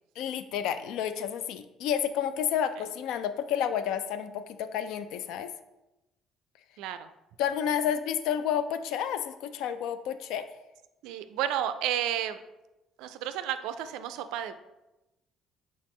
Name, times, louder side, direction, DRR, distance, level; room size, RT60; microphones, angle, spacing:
voice 1, 0.2-5.5 7.4-10.4, left 9 dB, 70° left, 11 dB, 0.3 m, -30 dB
voice 2, 6.8-7.1 11.0-12.4 13.0-14.5, right 11 dB, 75° right, 10 dB, 0.3 m, -32 dB
4.1 x 3.9 x 3.1 m, 0.98 s
hypercardioid pair, 55°, 0 cm